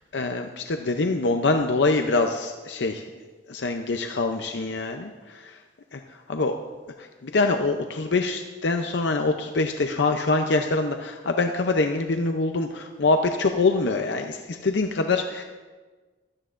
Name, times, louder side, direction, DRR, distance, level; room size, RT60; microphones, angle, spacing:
voice 1, 0.1-3.0 3.5-5.6 5.9-6.0 6.3-6.6 7.0-15.4, left 3 dB, 70° left, 5 dB, 0.6 m, -24 dB
16.0 x 12.5 x 2.5 m, 1.3 s
head